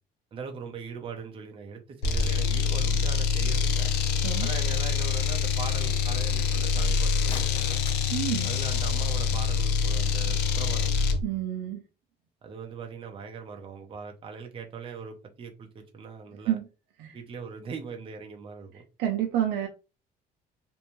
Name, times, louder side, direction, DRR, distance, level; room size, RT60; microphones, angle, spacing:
voice 1, 0.3-3.9 4.4-7.8 8.4-11.0 12.4-16.6 17.1-18.8, right 5 dB, 30° right, 0.5 m, -40 dB
sound 1, 2.0-11.2, left 5 dB, 85° left, 0.5 m, -25 dB
sound 2, 7.0-9.0, left 5 dB, 30° left, 0.5 m, -46 dB
voice 2, 8.1-8.5 11.2-11.8 16.5-16.7 17.0-17.2 19.0-19.7, right 11 dB, 85° right, 0.4 m, -29 dB
2.6 x 2.1 x 2.9 m
cardioid pair, 110°, 17 cm